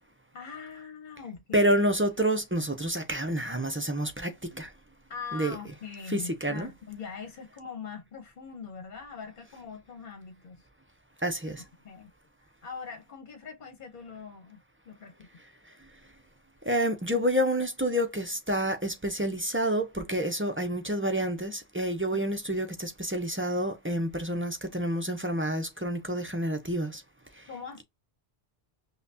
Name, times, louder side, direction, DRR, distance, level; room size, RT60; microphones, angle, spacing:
voice 1, 0.3-1.7 5.1-10.6 11.8-12.1 12.4-15.3 22.1-22.4 27.5-27.8, left 5 dB, 50° left, 1.0 m, -42 dB
voice 2, 1.5-4.3 4.6-4.7 5.3-5.5 6.1-6.7 11.2-11.6 16.7-27.0, right 1 dB, 15° right, 0.5 m, -28 dB
5.6 x 2.3 x 2.6 m
omnidirectional pair, 1.1 m